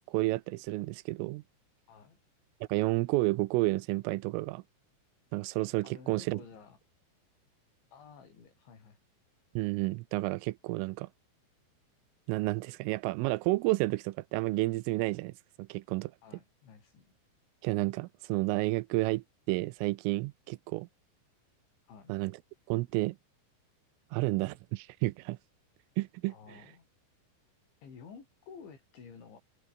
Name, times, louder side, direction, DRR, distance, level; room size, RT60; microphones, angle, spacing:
voice 1, 0.0-1.4 2.7-4.6 5.3-6.4 9.6-11.1 12.3-16.1 17.6-20.9 22.1-22.3 22.7-23.2 24.1-25.4 26.0-26.3, right 22 dB, 90° right, 3.3 m, -31 dB
voice 2, 5.8-6.8 7.9-9.0 16.2-17.2 21.8-22.1 26.3-26.9 27.8-29.4, left 6 dB, 65° left, 8.3 m, -52 dB
open air
omnidirectional pair, 5.8 m